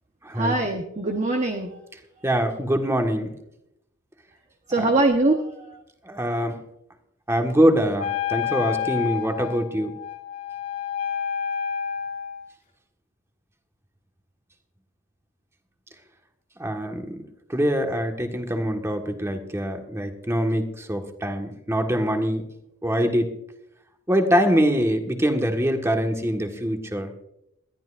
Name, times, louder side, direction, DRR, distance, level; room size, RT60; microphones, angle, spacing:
voice 1, 0.3-1.8 4.7-5.8, right 2 dB, 35° right, 2 dB, 1.1 m, -23 dB
voice 2, 2.2-3.3 6.0-6.6 7.3-9.9 16.6-17.2 17.5-22.5 22.8-23.4 24.1-27.1, equal, 15° right, 4 dB, 1.5 m, -24 dB
Wind instrument woodwind instrument, 8.0-12.5, left 8 dB, 40° left, 2.5 m, -29 dB
21.5 x 13.5 x 2.6 m, 0.80 s
head